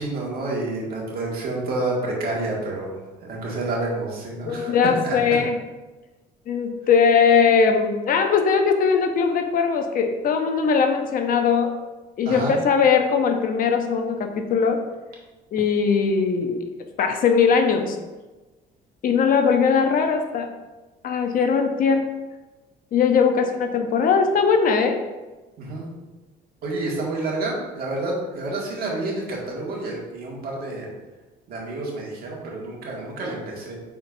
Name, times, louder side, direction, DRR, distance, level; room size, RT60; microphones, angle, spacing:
voice 1, 0.0-5.2 12.3-12.5 25.6-25.9 26.6-30.9 31.5-33.8, right 2 dB, 65° right, -3 dB, 2.0 m, -29 dB
voice 2, 4.5-5.6 6.5-11.7 12.2-14.8 15.5-16.6 17.0-18.0 19.0-20.5 21.0-22.1 22.9-25.0, left 6 dB, 55° left, 5 dB, 0.8 m, -20 dB
8.4 x 4.3 x 2.7 m, 1.2 s
cardioid pair, 110°, 17 cm